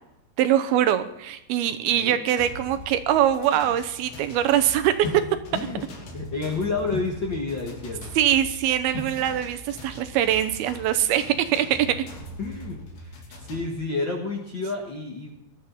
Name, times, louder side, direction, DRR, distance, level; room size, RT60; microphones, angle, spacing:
voice 1, 0.4-5.2 8.2-12.0, right 11 dB, 80° right, 10 dB, 2.6 m, -23 dB
sound 1, 2.4-13.7, equal, 80° left, 4.9 m, -42 dB
sound 2, 5.0-11.1, left 2 dB, 65° left, 3.9 m, -41 dB
voice 2, 5.5-5.8 6.1-8.0 12.4-15.3, left 3 dB, 45° left, 0 dB, 1.6 m, -30 dB
19.5 x 13.0 x 4.2 m, 0.83 s
omnidirectional pair, 4.6 m